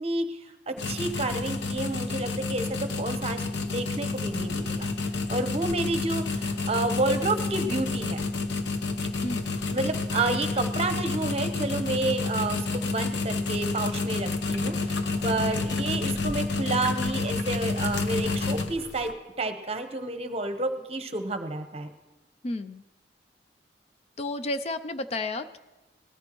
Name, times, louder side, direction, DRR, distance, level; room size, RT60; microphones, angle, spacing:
voice 1, 0.0-4.9 5.3-8.2 9.7-19.1 19.4-21.9, right 2 dB, 35° right, 8 dB, 0.9 m, -30 dB
sound 1, 0.8-19.1, left 3 dB, 70° left, 0.8 m, -29 dB
voice 2, 9.2-9.6 22.4-22.8 24.2-25.6, left 2 dB, 35° left, 11 dB, 0.4 m, -32 dB
19.0 x 14.0 x 3.0 m, 1.1 s
head